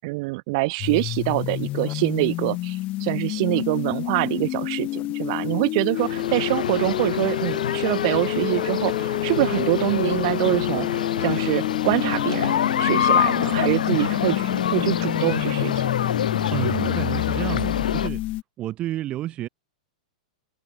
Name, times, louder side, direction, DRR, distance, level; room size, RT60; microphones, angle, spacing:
voice 1, 0.0-15.9, right 26 dB, 45° right, 5.7 m, -25 dB
sound 1, 0.8-18.4, left 17 dB, 30° left, 1.8 m, -28 dB
sound 2, 6.0-18.1, left 8 dB, 90° left, 2.7 m, -26 dB
voice 2, 16.5-18.2 18.6-19.5, right 14 dB, 25° right, 6.5 m, -30 dB
hypercardioid pair, 150°, 4 cm